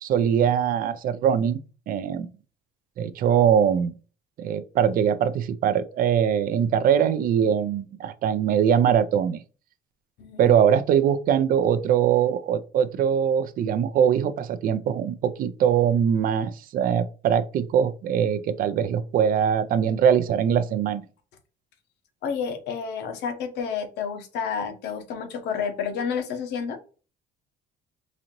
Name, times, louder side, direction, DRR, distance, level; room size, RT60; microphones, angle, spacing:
voice 1, 0.0-1.6 1.9-2.3 3.0-3.9 4.4-9.4 10.4-21.0, right 8 dB, 55° right, 0.5 m, -22 dB
voice 2, 10.2-10.6 22.2-26.8, left 6 dB, 80° left, 0.9 m, -30 dB
4.1 x 2.6 x 2.9 m
cardioid pair, 110°, 17 cm